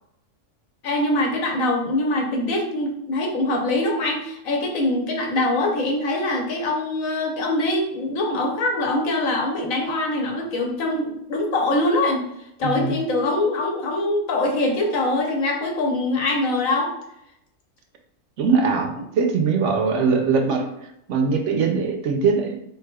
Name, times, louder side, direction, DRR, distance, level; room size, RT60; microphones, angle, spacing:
voice 1, 0.8-12.2 12.6-16.9 19.9-20.1, left 2 dB, 85° left, 1 dB, 1.2 m, -23 dB
voice 2, 12.6-12.9 18.4-20.7 21.1-22.6, right 5 dB, 70° right, 3 dB, 0.9 m, -21 dB
4.1 x 3.3 x 2.2 m, 0.79 s
omnidirectional pair, 1.4 m